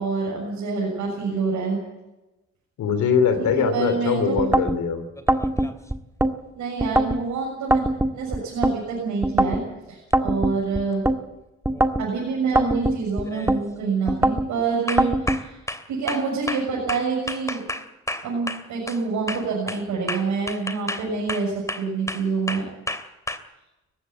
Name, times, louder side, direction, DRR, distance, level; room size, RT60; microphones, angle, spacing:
voice 1, 0.0-1.8 3.4-4.4 6.5-7.8 8.1-9.6 9.9-11.0 12.0-15.6 15.9-17.6 18.2-22.7, right 4 dB, 80° right, -3 dB, 7.0 m, -27 dB
voice 2, 2.8-5.1, left 6 dB, 75° left, 9 dB, 3.0 m, -22 dB
sound 1, 4.4-4.8 5.3-6.3 6.8-7.2 7.7-8.8 9.2-9.6 10.1-11.2 11.7-12.1 12.6-13.6 14.1-14.5 15.0-15.4, right 1 dB, 10° right, 1.8 m, -21 dB
sound 2, 5.2-5.9 10.1-10.2 11.7-12.0 12.4-12.8 13.2-13.6 14.0-14.3 14.9-19.0 19.3-23.4, left 1 dB, 10° left, 2.9 m, -32 dB
19.5 x 15.5 x 9.6 m, 1.0 s
supercardioid pair, 50°, 29 cm